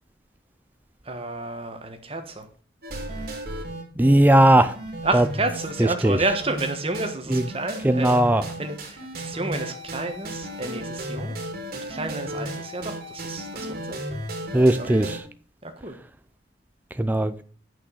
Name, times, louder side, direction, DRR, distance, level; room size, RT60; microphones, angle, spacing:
voice 1, 1.0-2.5 5.0-8.2 8.6-11.4 11.9-14.0 14.8-15.1 15.6-15.9, right 2 dB, 30° right, 1.4 m, -30 dB
sound 1, 2.8-15.2, right 1 dB, 50° right, 2.3 m, -34 dB
voice 2, 4.0-4.7 5.1-5.2 6.0-6.2 7.3-7.4 7.8-8.4 14.5-15.2 17.0-17.4, right 1 dB, 10° right, 0.4 m, -17 dB
8.5 x 6.3 x 6.3 m
head